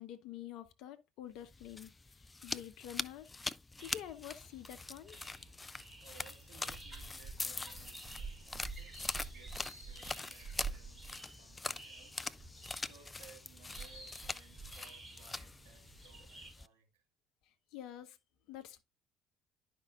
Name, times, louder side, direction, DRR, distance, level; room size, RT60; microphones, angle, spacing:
voice 1, 0.0-1.9 2.4-3.3 3.8-5.2 17.7-18.2 18.5-18.8, left 11 dB, 60° left, 0.8 m, -47 dB
sound 1, 1.5-16.7, left 3 dB, 20° left, 0.4 m, -44 dB
sound 2, 3.8-16.5, right 4 dB, 25° right, 4.9 m, -50 dB
voice 2, 6.0-9.0 9.3-12.2 12.7-17.0, right 7 dB, 70° right, 2.1 m, -62 dB
11.5 x 5.3 x 2.4 m
figure-of-eight pair, 55°, 0 cm